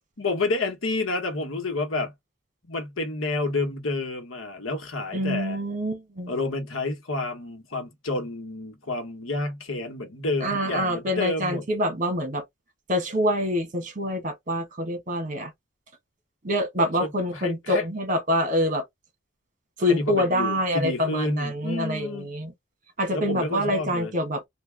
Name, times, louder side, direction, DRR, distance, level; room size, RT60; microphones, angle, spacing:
voice 1, 0.2-2.1 2.7-5.6 6.3-11.6 17.0-17.8 19.9-22.3 23.1-24.1, left 2 dB, 90° left, 1.3 m, -29 dB
voice 2, 5.1-6.3 10.4-12.4 12.9-15.5 16.4-18.8 19.8-22.5 23.0-24.5, equal, 40° right, 1.5 m, -26 dB
3.5 x 2.5 x 3.4 m
head